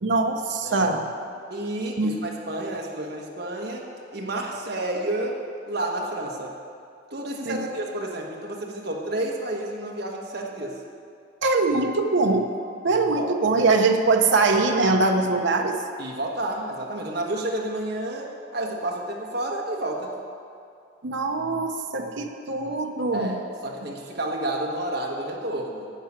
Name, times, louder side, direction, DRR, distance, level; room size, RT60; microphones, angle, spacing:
voice 1, 0.0-1.1 2.0-2.2 7.5-7.6 11.4-12.5 12.8-15.8 21.0-23.3, right 3 dB, 70° right, 3 dB, 0.7 m, -22 dB
voice 2, 1.5-5.4 5.7-6.5 7.1-10.8 13.2-13.3 13.7-13.8 16.0-20.1 23.1-25.9, right 1 dB, 55° right, -1 dB, 1.3 m, -30 dB
10.5 x 5.6 x 8.7 m, 2.5 s
head